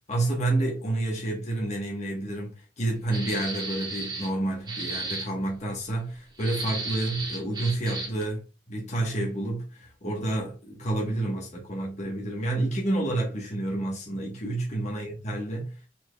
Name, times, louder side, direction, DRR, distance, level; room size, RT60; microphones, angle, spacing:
voice 1, 0.1-15.9, right 2 dB, 40° left, 1.1 m, -29 dB
sound 1, 3.1-4.3 4.7-5.3 6.4-8.2, right 3 dB, 25° right, 1.7 m, -34 dB
4.8 x 4.4 x 2.2 m
head